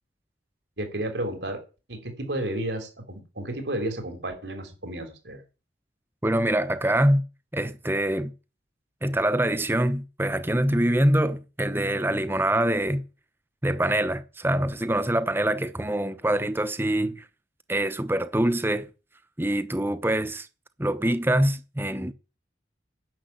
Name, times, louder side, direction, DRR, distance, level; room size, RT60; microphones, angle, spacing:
voice 1, 0.8-1.6 1.9-5.4, right 1 dB, 80° right, 3.2 m, -32 dB
voice 2, 6.2-7.2 7.5-8.3 9.0-13.0 13.6-17.2 17.7-18.9 19.4-20.5 20.8-22.1, right 1 dB, 15° right, 0.8 m, -24 dB
10.5 x 7.0 x 9.3 m
head